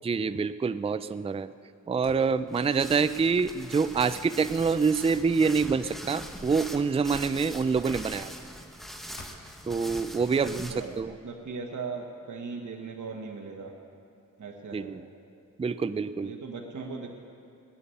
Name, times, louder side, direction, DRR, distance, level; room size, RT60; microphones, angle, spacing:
voice 1, 0.0-1.5 1.9-8.3 9.7-11.1 14.7-15.0 15.6-16.3, right 5 dB, 20° right, 13 dB, 0.4 m, -26 dB
sound 1, 2.0-2.3 3.2-3.3 4.0-4.2 5.1-5.4 6.4-6.8 7.9-8.2 9.2-9.5, left 3 dB, 60° left, 2.0 m, -49 dB
sound 2, 2.5-11.0, equal, ahead, 1.1 m, -42 dB
voice 2, 11.2-13.7 14.4-15.1 16.2-17.1, right 4 dB, 65° right, 1 dB, 1.4 m, -38 dB
17.5 x 7.0 x 9.8 m, 2.5 s
cardioid pair, 75°, 32 cm